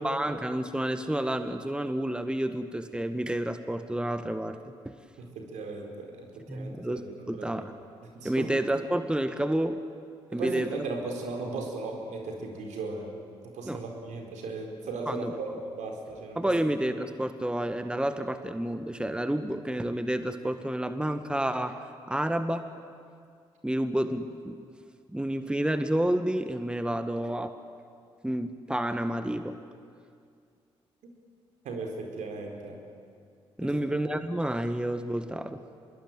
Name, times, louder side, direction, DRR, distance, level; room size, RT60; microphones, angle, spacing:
voice 1, 0.0-4.6 4.9-5.0 6.5-7.0 7.3-7.7 8.2-9.8 10.3-10.7 13.7-13.8 15.1-15.3 16.4-21.8 22.1-22.7 23.6-24.6 25.1-27.6 28.2-29.6 33.6-35.6, right 1 dB, 5° right, 9 dB, 1.7 m, -29 dB
voice 2, 5.2-7.5 8.1-8.5 10.3-13.1 13.4-16.5 31.6-32.8 33.6-33.9, right 3 dB, 75° right, 2 dB, 4.4 m, -37 dB
25.0 x 21.5 x 9.2 m, 2.3 s
hypercardioid pair, 45°, 13 cm